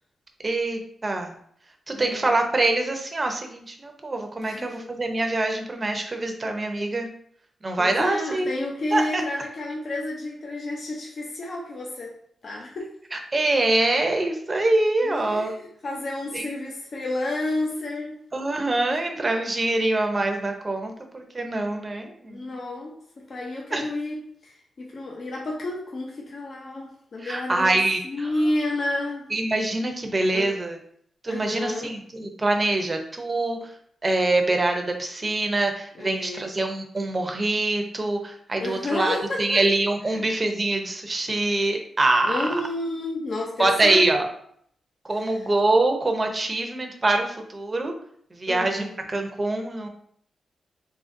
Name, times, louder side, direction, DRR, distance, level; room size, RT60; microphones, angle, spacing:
voice 1, 0.4-1.4 1.9-7.1 7.6-8.5 8.9-9.2 13.1-15.5 16.3-16.5 18.3-22.5 23.7-23.8 27.2-28.5 29.3-30.8 31.2-33.8 34.0-42.5 43.6-44.3 45.0-47.9 48.3-49.9, right 2 dB, 25° right, 4 dB, 0.7 m, -24 dB
voice 2, 1.9-2.4 4.4-4.9 7.8-12.1 12.4-12.9 15.0-18.2 18.9-19.0 22.3-24.2 24.4-27.7 28.0-29.3 30.3-30.5 31.3-31.9 36.0-36.5 38.6-39.6 40.1-40.2 42.2-44.1 48.5-49.0, left 1 dB, 50° left, -2 dB, 0.7 m, -30 dB
3.8 x 3.8 x 2.6 m, 0.65 s
wide cardioid pair, 120°, 0 cm